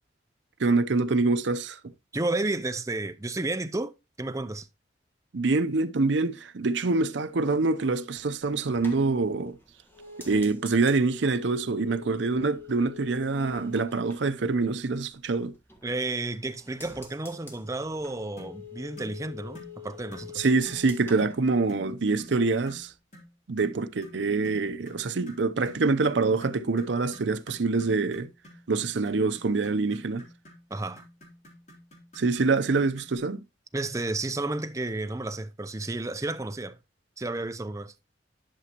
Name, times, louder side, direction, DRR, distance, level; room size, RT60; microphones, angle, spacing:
voice 1, 0.6-1.8 5.3-9.6 10.3-15.5 20.4-22.9 23.5-28.3 28.7-30.2 32.2-33.4, right 3 dB, 70° right, 0.6 m, -25 dB
voice 2, 2.1-3.9 4.2-4.7 15.8-20.5 30.7-31.1 33.7-36.8 37.2-37.9, right 2 dB, 15° right, 0.5 m, -32 dB
sound 1, 8.3-15.1 15.5-16.2 16.5-22.2 22.5-22.9, left 4 dB, 10° left, 1.4 m, -47 dB
sound 2, 18.4-18.6 19.0-19.2 19.5-19.8 20.1-20.3 20.7-20.9 21.2-21.4 21.7-21.9 22.2-22.4 22.7-22.9 23.1-23.3 23.6-33.2, equal, 40° left, 3.1 m, -49 dB
11.5 x 6.1 x 2.9 m
head